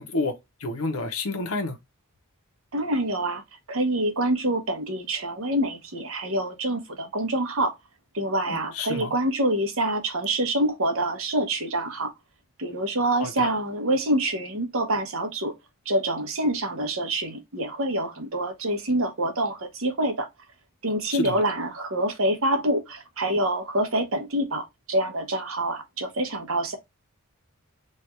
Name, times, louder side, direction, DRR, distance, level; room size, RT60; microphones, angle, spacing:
voice 1, 0.0-1.8 8.5-9.1 13.2-13.5 21.1-21.4, left 2 dB, 75° left, 0.8 m, -30 dB
voice 2, 2.7-3.4 3.7-7.7 8.1-12.1 12.6-15.5 15.9-20.3 20.8-26.8, right 1 dB, 65° right, 1.0 m, -26 dB
3.2 x 2.4 x 4.3 m
head